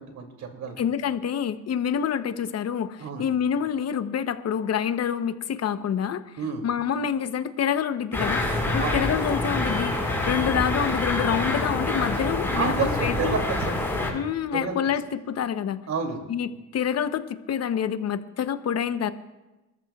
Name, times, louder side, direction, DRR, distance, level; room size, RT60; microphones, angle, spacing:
voice 1, 0.0-0.8 3.0-3.3 6.4-6.7 8.8-8.9 12.5-13.8 14.6-14.9 15.9-16.2, right 5 dB, 70° right, 3 dB, 2.6 m, -30 dB
voice 2, 0.8-6.2 6.6-8.4 8.7-12.7 13.0-13.3 14.1-15.8 16.3-19.1, left 8 dB, 55° left, 11 dB, 0.8 m, -27 dB
sound 1, 8.1-14.1, left 1 dB, 10° left, 4.3 m, -26 dB
26.5 x 13.5 x 2.3 m, 1.1 s
cardioid pair, 90°, 30 cm